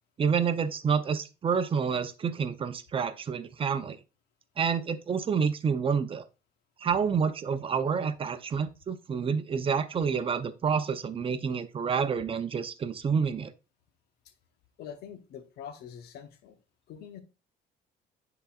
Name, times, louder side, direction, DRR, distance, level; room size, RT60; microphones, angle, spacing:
voice 1, 0.2-4.0 4.6-6.2 6.8-13.5, right 6 dB, 30° right, 0.7 m, -28 dB
voice 2, 14.8-16.6 16.9-17.2, left 8 dB, 75° left, 0.9 m, -44 dB
10.0 x 4.0 x 2.4 m
cardioid pair, 110°, 17 cm